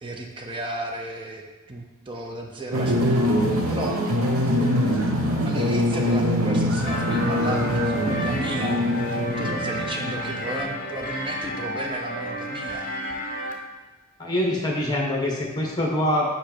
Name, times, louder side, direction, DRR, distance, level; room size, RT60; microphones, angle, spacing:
voice 1, 0.0-1.4 1.7-4.0 5.4-13.0, right 1 dB, 20° right, 1 dB, 0.5 m, -34 dB
sound 1, 2.7-10.8, equal, 75° right, 0.8 m, -23 dB
sound 2, 6.9-13.5, right 1 dB, 40° left, 0.7 m, -31 dB
voice 2, 14.2-16.4, left 1 dB, 20° left, -2 dB, 1.1 m, -24 dB
5.2 x 4.9 x 4.4 m, 1.2 s
head